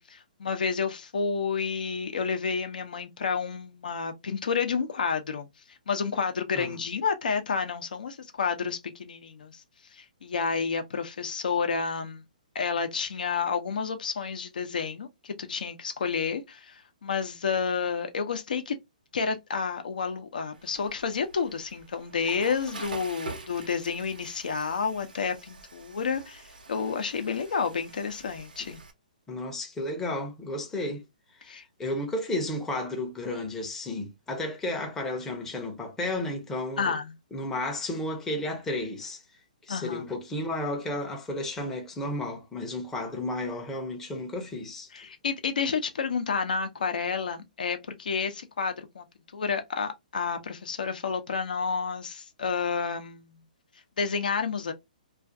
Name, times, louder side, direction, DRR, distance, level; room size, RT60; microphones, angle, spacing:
voice 1, 0.0-5.5 5.9-9.6 9.9-12.2 12.5-18.8 19.1-28.8 31.5-31.6 36.8-37.1 39.7-40.0 44.9-49.0 49.3-53.4 54.0-54.7, left 5 dB, 75° left, 0.6 m, -30 dB
Water / Toilet flush, 20.5-28.9, right 3 dB, 90° right, 0.7 m, -45 dB
voice 2, 29.3-31.0 31.4-37.0 37.3-39.2 39.6-44.9, left 1 dB, 10° left, 0.5 m, -33 dB
2.4 x 2.4 x 2.5 m
hypercardioid pair, 145°, 5 cm